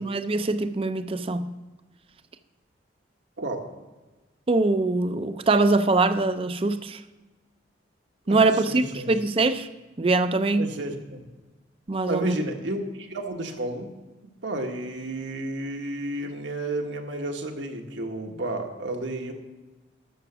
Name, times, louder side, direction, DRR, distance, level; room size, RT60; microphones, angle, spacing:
voice 1, 0.0-1.6 4.5-7.0 8.3-9.7 10.0-10.7 11.9-12.4, right 3 dB, 30° right, 11 dB, 0.5 m, -23 dB
voice 2, 3.4-3.7 8.3-9.1 10.6-11.2 12.1-13.9 14.4-19.3, right 1 dB, 75° right, 3 dB, 1.4 m, -32 dB
12.5 x 6.0 x 6.9 m, 1.2 s
head